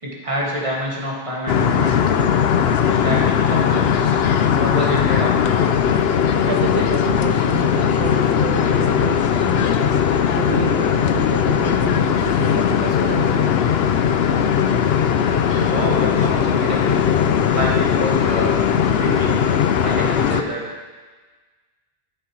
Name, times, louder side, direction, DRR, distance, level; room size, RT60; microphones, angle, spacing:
voice 1, 0.0-2.3 2.9-4.2 4.6-5.3 14.9-15.2 15.5-17.0 17.5-18.5 18.8-19.4 19.8-20.6, equal, 30° right, -4 dB, 2.2 m, -27 dB
sound 1, 1.5-20.4, left 8 dB, 75° left, 0.8 m, -18 dB
voice 2, 6.5-9.7 10.3-13.4, right 7 dB, 80° right, 3 dB, 0.9 m, -30 dB
13.0 x 8.1 x 3.2 m, 1.3 s
omnidirectional pair, 1.1 m